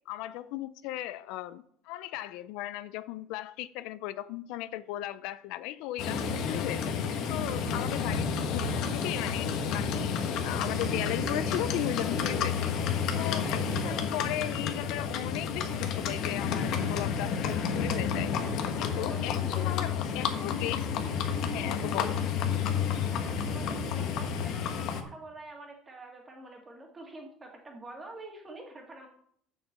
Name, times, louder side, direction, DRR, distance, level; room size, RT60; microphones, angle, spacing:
voice 1, 0.1-7.0 7.3-10.2 10.4-12.7 13.1-18.3 18.8-21.1 21.5-22.3, left 14 dB, 70° left, 0.4 m, -36 dB
Livestock farm animals working animals, 6.0-25.0, left 6 dB, 55° left, 1.3 m, -30 dB
voice 2, 13.2-14.0 18.9-19.8 23.1-24.6 24.9-29.1, right 2 dB, 15° right, 2.3 m, -46 dB
7.2 x 6.6 x 7.4 m
cardioid pair, 150°, 0 cm